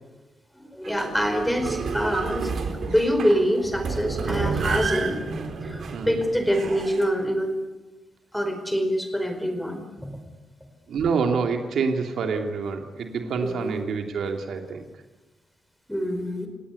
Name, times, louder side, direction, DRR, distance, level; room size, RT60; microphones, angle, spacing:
voice 1, 0.7-2.5 2.8-5.2 5.6-7.5 8.3-10.1 13.4-13.8 15.9-16.5, equal, 5° left, 7 dB, 4.8 m, -25 dB
sound 1, 0.8-7.1, right 4 dB, 60° right, 3.8 m, -30 dB
voice 2, 10.9-14.8, right 5 dB, 75° right, 4 dB, 2.7 m, -27 dB
29.0 x 18.0 x 8.4 m, 1.1 s
cardioid pair, 120°, 0 cm